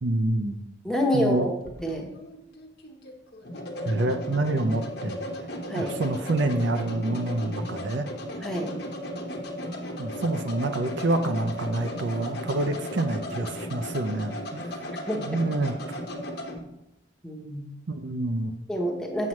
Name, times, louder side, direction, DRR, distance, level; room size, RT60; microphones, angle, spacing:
voice 1, 0.0-0.6 1.1-1.5 3.8-5.2 5.8-8.1 10.0-14.7 15.3-16.0 17.9-18.5, right 2 dB, 70° right, 7 dB, 0.6 m, -27 dB
voice 2, 0.8-1.5 1.8-2.1 5.7-5.9 8.4-8.7 15.1-15.4 17.2-17.7 18.7-19.3, equal, 5° left, 0 dB, 1.0 m, -27 dB
sound 1, 1.3-16.6, left 1 dB, 55° left, 1.1 m, -36 dB
7.5 x 7.3 x 3.1 m, 0.87 s
head